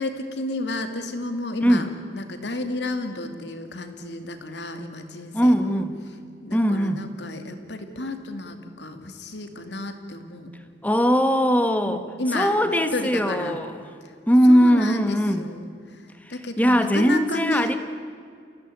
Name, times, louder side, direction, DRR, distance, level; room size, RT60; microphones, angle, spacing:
voice 1, 0.0-5.9 6.4-10.5 11.9-12.6 12.9-13.6 14.0-14.1 14.5-15.6 15.9-16.0 16.3-17.8, left 2 dB, 70° left, 7 dB, 2.5 m, -32 dB
voice 2, 5.3-5.9 6.5-7.1 10.8-12.0 12.3-13.8 14.3-15.5 16.6-17.8, equal, 10° left, 8 dB, 1.4 m, -20 dB
29.0 x 17.0 x 9.8 m, 2.3 s
head